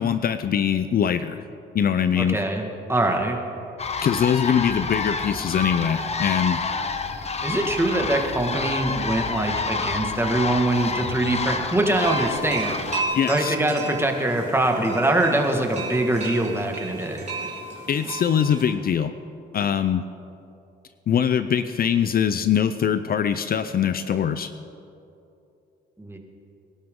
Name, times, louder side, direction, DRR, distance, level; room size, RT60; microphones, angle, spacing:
voice 1, 0.0-1.4 1.7-2.4 4.0-6.6 13.1-13.6 17.9-19.1 19.5-20.0 21.1-24.5, left 8 dB, 50° left, 11 dB, 0.6 m, -22 dB
voice 2, 2.2-2.6 2.9-3.4 7.4-12.8 13.3-17.3 26.0-26.2, right 1 dB, 10° right, 2 dB, 1.8 m, -23 dB
sound 1, 3.8-13.0, left 4 dB, 30° left, 0.9 m, -28 dB
sound 2, 11.9-18.6, right 2 dB, 35° right, 3.5 m, -33 dB
22.0 x 12.0 x 3.8 m, 2.7 s
cardioid pair, 90°, 20 cm